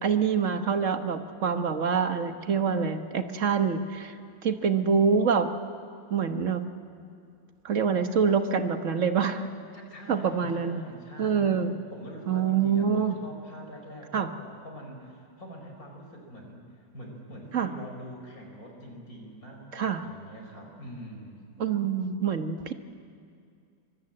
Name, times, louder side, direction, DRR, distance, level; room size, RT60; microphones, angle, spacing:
voice 1, 0.0-4.1 4.4-5.5 6.1-6.6 7.6-9.4 10.1-10.8 11.2-11.8 12.3-13.1 14.1-14.3 17.5-17.7 19.7-20.0 21.6-22.7, right 6 dB, 45° right, 8 dB, 1.4 m, -25 dB
voice 2, 9.7-21.4, equal, 45° left, 2 dB, 4.9 m, -44 dB
24.0 x 23.5 x 8.8 m, 2.4 s
omnidirectional pair, 2.1 m